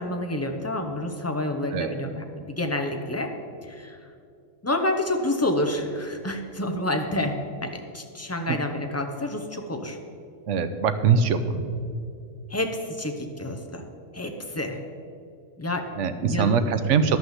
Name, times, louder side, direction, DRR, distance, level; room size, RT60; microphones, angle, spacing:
voice 1, 0.0-3.3 3.6-4.0 4.6-10.0 12.5-13.8 14.1-14.8 15.6-15.9 16.2-16.7, left 1 dB, 15° left, 4 dB, 0.7 m, -29 dB
voice 2, 10.5-11.7 16.0-17.2, right 6 dB, 75° right, 10 dB, 1.0 m, -22 dB
11.0 x 6.1 x 7.3 m, 2.4 s
omnidirectional pair, 1.3 m